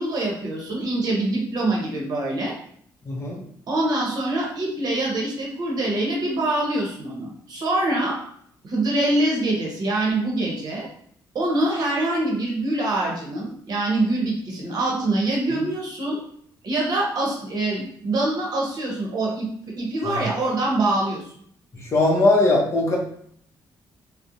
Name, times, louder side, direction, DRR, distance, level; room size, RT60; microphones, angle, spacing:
voice 1, 0.0-2.5 3.7-8.2 8.6-10.9 11.3-16.2 16.6-19.5 19.8-21.2, right 2 dB, 55° right, -2 dB, 0.8 m, -24 dB
voice 2, 3.1-3.4 20.1-20.3 21.8-23.0, left 2 dB, 35° left, -1 dB, 0.6 m, -20 dB
2.4 x 2.0 x 2.7 m, 0.64 s
cardioid pair, 135°, 8 cm